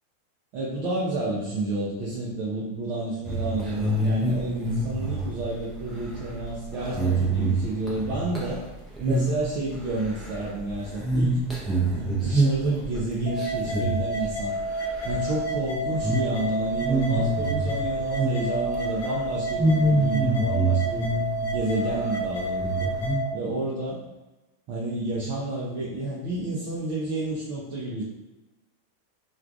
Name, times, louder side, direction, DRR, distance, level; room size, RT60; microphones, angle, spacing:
voice 1, 0.5-8.6 9.0-11.4 11.9-14.5 15.0-21.1 21.5-22.9 23.3-24.0 24.7-28.0, right 2 dB, 45° right, -6 dB, 0.6 m, -30 dB
sound 1, 3.2-8.7 9.0-9.4 9.7-14.6 14.9-15.4 15.9-16.3 16.7-18.7 19.0-19.2 19.6-21.6 21.9-22.0 22.5-23.2, right 2 dB, 10° right, 0.8 m, -26 dB
sound 2, 13.3-23.3, right 1 dB, 50° left, 0.8 m, -30 dB
4.4 x 2.4 x 2.3 m, 1.1 s
figure-of-eight pair, 90°, 0 cm